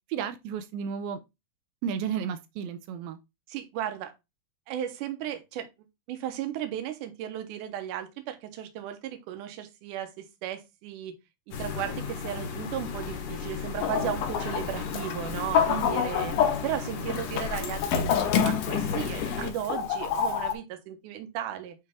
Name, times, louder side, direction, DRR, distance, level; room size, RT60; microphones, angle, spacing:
voice 1, 0.1-1.2 1.8-3.2 15.7-15.9, right 7 dB, 85° right, 2.4 m, -33 dB
voice 2, 3.5-4.1 4.7-5.7 6.1-11.1 11.6-21.8, right 10 dB, 70° right, 2.4 m, -35 dB
sound 1, 11.5-19.5, left 6 dB, 70° left, 2.9 m, -34 dB
Chicken rooster, 13.8-20.5, left 8 dB, 85° left, 2.8 m, -28 dB
8.7 x 3.3 x 3.5 m
omnidirectional pair, 4.0 m